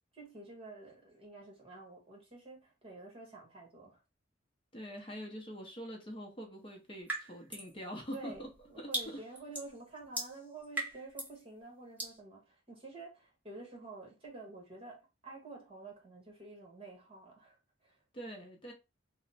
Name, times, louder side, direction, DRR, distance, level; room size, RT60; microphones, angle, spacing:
voice 1, 0.1-4.0 8.1-18.0, right 3 dB, 30° right, 1.3 m, -50 dB
voice 2, 4.7-8.5 8.8-9.2 18.1-18.7, equal, 30° left, 0.7 m, -44 dB
sound 1, 7.1-7.7 8.1-11.4 12.0-12.2, right 2 dB, 10° right, 1.0 m, -40 dB
3.1 x 2.1 x 4.0 m
head